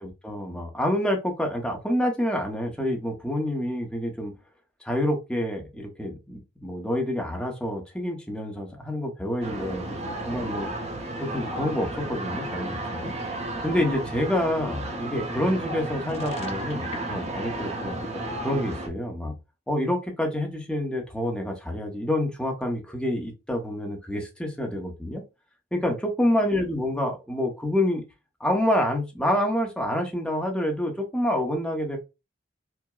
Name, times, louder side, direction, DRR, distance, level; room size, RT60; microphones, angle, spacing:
voice 1, 0.0-4.3 4.8-10.7 11.2-13.1 13.6-18.0 18.4-19.3 19.7-25.2 25.7-28.0 28.4-32.0, left 1 dB, 5° left, 0.8 m, -27 dB
sound 1, 9.4-18.9, right 1 dB, 35° right, 0.8 m, -33 dB
sound 2, 16.0-18.2, left 4 dB, 35° left, 0.3 m, -41 dB
4.7 x 2.1 x 2.3 m
head